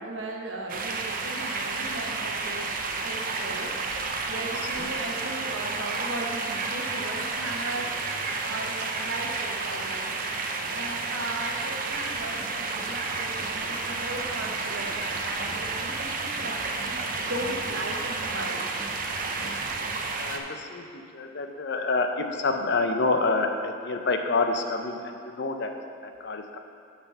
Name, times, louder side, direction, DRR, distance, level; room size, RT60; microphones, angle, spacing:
voice 1, 0.0-2.7 3.0-3.7 4.3-8.0 8.5-18.8, right 2 dB, 75° right, 0 dB, 1.1 m, -37 dB
sound 1, 0.7-20.4, right 3 dB, 45° right, 0.6 m, -31 dB
sound 2, 11.9-19.8, right 1 dB, 20° right, 1.7 m, -44 dB
voice 2, 20.2-25.7 26.0-26.6, left 3 dB, 55° left, 5 dB, 0.6 m, -28 dB
6.8 x 5.0 x 6.7 m, 2.5 s
head